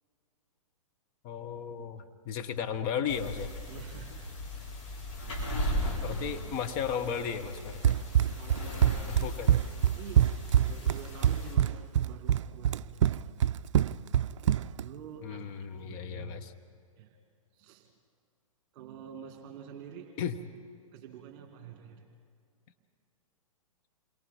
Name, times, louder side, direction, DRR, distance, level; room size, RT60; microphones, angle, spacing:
voice 1, 1.2-3.5 6.0-7.9 9.1-9.6 15.2-16.5 20.2-20.3, left 7 dB, 35° left, 7 dB, 1.0 m, -35 dB
sound 1, 3.1-11.6, equal, 50° left, 5.9 m, -37 dB
voice 2, 3.7-4.3 8.3-9.3 9.6-10.2 10.6-13.2 14.8-15.5 15.7-16.5 17.0-17.2 17.5-17.9 18.7-20.1 20.9-22.1, right 8 dB, 40° right, 3 dB, 2.1 m, -47 dB
Run, 7.8-14.9, right 10 dB, 55° right, 0.4 m, -25 dB
28.0 x 22.5 x 4.3 m, 2.3 s
figure-of-eight pair, 115°, 18 cm